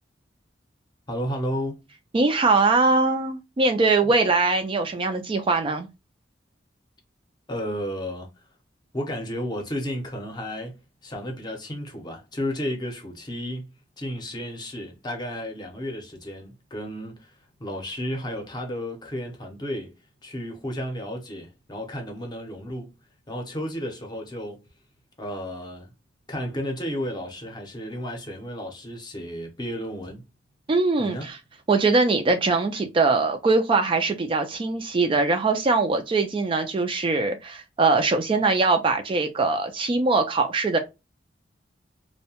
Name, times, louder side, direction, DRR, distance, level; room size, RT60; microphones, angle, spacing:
voice 1, 1.1-1.8 7.5-8.3 8.9-17.3 17.6-19.9 20.2-22.9 23.3-24.6 25.2-25.9 26.3-30.2 31.0-31.3, equal, 25° left, 0.6 m, -33 dB
voice 2, 2.1-5.9 30.7-31.4 31.7-40.8, right 3 dB, 30° right, 0.3 m, -22 dB
2.7 x 2.1 x 2.7 m
head